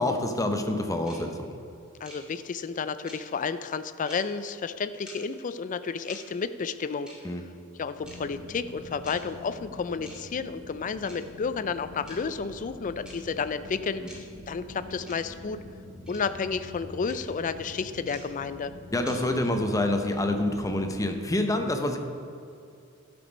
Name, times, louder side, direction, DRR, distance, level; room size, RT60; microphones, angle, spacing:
voice 1, 0.0-1.6 7.2-7.4 14.0-14.1 18.9-22.0, left 1 dB, 15° left, 5 dB, 0.8 m, -27 dB
sound 1, 1.1-1.2 2.0-2.2 3.1-3.2 4.1-4.2 5.1-5.2 6.1-6.2 7.1-7.2 8.1-8.2 9.1-9.2 10.1-10.2 11.1-11.2 12.1-12.2 13.0-13.2 14.1-14.2 15.1-15.2 16.1-16.2 17.1-17.2 18.1-18.2 19.1-19.2, equal, 5° right, 2.2 m, -46 dB
voice 2, 2.0-7.1 7.8-15.6 16.1-18.7, left 5 dB, 35° left, 12 dB, 0.4 m, -31 dB
sound 2, 7.9-21.2, left 2 dB, 20° right, 1.9 m, -46 dB
12.0 x 6.1 x 5.2 m, 2.5 s
head